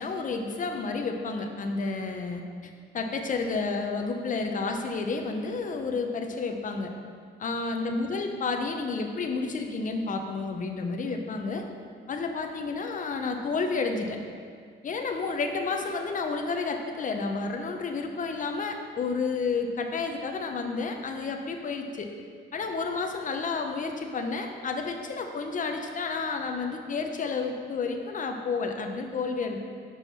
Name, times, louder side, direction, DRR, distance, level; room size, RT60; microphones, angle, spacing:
voice 1, 0.0-2.4 2.9-6.9 7.4-11.6 12.1-14.2 14.8-22.1 22.5-29.6, left 4 dB, 40° left, 4 dB, 0.7 m, -30 dB
5.4 x 4.6 x 5.7 m, 2.1 s
cardioid pair, 90°, 20 cm